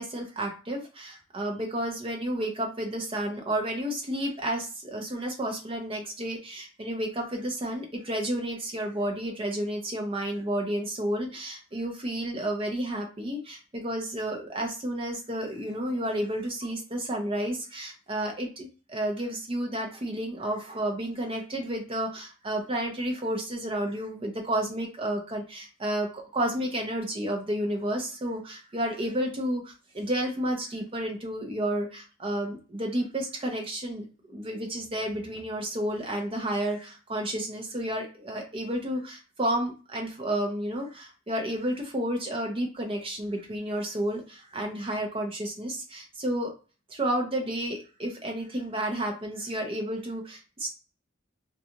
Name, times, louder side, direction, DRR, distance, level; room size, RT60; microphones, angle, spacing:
voice 1, 0.0-46.5 46.9-50.7, right 1 dB, 30° right, 2 dB, 0.6 m, -31 dB
2.4 x 2.3 x 2.8 m, 0.34 s
head